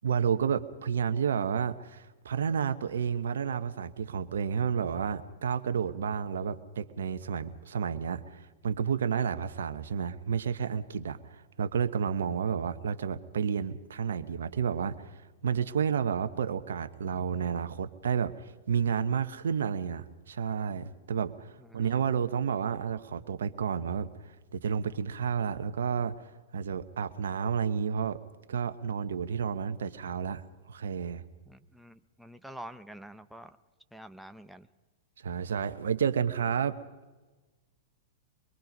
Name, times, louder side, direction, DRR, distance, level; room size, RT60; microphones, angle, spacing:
voice 1, 0.0-15.1 15.4-24.1 24.5-26.1 26.5-28.2 28.5-30.4 30.7-31.2 35.2-36.8, right 7 dB, 75° right, 9 dB, 1.1 m, -31 dB
voice 2, 31.5-33.6 33.9-34.7, right 1 dB, ahead, 8 dB, 0.8 m, -47 dB
23.5 x 22.5 x 5.4 m, 1.2 s
hypercardioid pair, 110°, 0 cm